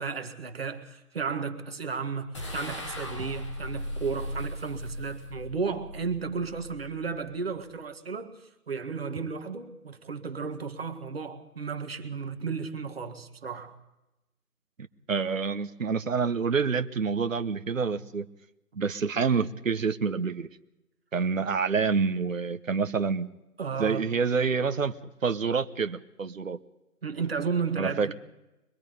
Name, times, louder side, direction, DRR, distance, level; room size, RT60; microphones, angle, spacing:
voice 1, 0.0-13.8 23.6-24.0 27.0-28.0, right 5 dB, 40° right, 1.8 m, -33 dB
sound 1, 2.3-7.7, left 1 dB, 20° left, 1.4 m, -38 dB
voice 2, 14.8-18.3 18.8-20.5 21.1-23.3 23.8-24.9 25.2-26.6 27.8-28.1, right 5 dB, 55° right, 1.1 m, -27 dB
23.0 x 23.0 x 5.3 m
figure-of-eight pair, 160°, 46 cm